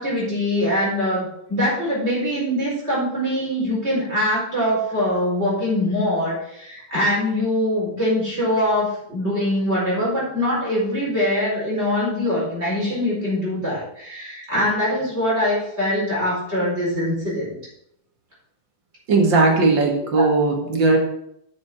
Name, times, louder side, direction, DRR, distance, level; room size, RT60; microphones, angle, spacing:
voice 1, 0.0-17.6, left 1 dB, 30° right, -7 dB, 4.7 m, -23 dB
voice 2, 19.1-21.0, right 3 dB, 65° right, 1 dB, 2.4 m, -17 dB
7.4 x 7.0 x 6.0 m, 0.74 s
omnidirectional pair, 2.2 m